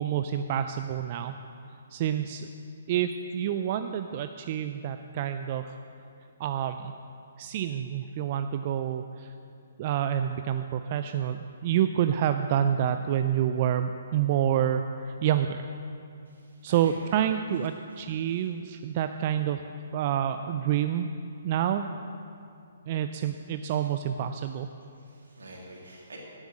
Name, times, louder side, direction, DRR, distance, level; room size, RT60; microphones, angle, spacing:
voice 1, 0.0-1.4 1.9-2.5 2.9-5.7 6.4-6.9 7.4-9.3 9.8-15.7 16.6-19.6 19.9-21.1 21.4-21.9 22.9-24.7, right 10 dB, 40° right, 8 dB, 0.3 m, -28 dB
voice 2, 16.3-17.2 17.9-18.0 18.3-18.5 25.0-26.2, right 2 dB, 80° right, -2 dB, 2.4 m, -48 dB
9.8 x 7.1 x 6.4 m, 2.5 s
figure-of-eight pair, 135°, 0 cm